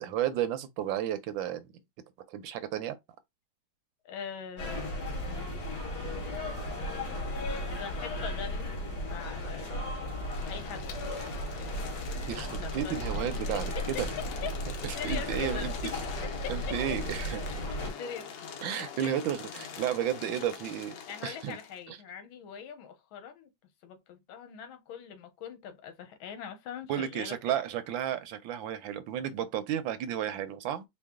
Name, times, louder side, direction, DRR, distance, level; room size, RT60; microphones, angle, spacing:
voice 1, 0.0-1.7 2.3-3.0 12.3-14.1 14.8-15.7 16.5-17.4 18.6-20.9 21.2-21.6 21.9-22.0 26.9-30.8, right 10 dB, 80° right, 1.4 m, -32 dB
voice 2, 4.0-6.0 7.7-8.7 9.1-10.9 12.6-13.1 13.5-13.9 14.4-14.5 15.0-15.7 16.2-16.5 18.0-18.5 19.0-19.2 21.1-23.5 23.8-27.6, left 7 dB, 85° left, 1.7 m, -42 dB
sound 1, 4.6-17.9, left 1 dB, 50° left, 2.3 m, -35 dB
sound 2, 10.2-21.8, left 7 dB, 65° left, 1.3 m, -44 dB
4.7 x 2.4 x 3.5 m
omnidirectional pair, 2.2 m